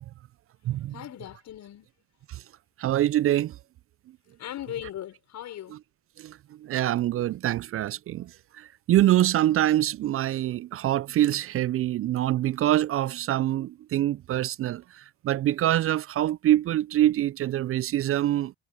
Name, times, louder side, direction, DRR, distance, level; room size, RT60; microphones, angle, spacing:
voice 1, 0.9-1.9 4.4-5.8, left 12 dB, 65° left, 5.7 m, -38 dB
voice 2, 2.8-3.6 6.2-8.3 8.6-18.5, right 13 dB, 45° right, 0.4 m, -25 dB
hypercardioid pair, 50°, 30 cm